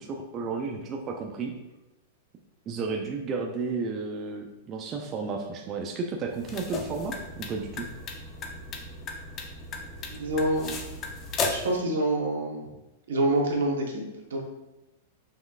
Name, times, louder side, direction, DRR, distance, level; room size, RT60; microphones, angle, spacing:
voice 1, 0.0-1.5 2.7-7.9, right 4 dB, 30° right, 1 dB, 0.5 m, -32 dB
sound 1, 6.3-11.8, left 3 dB, 30° left, 0.6 m, -35 dB
voice 2, 10.1-10.8 11.5-12.6 13.1-14.0 14.3-14.5, right 1 dB, 80° right, 0 dB, 1.1 m, -26 dB
5.4 x 3.1 x 2.4 m, 0.97 s
hypercardioid pair, 125°, 0 cm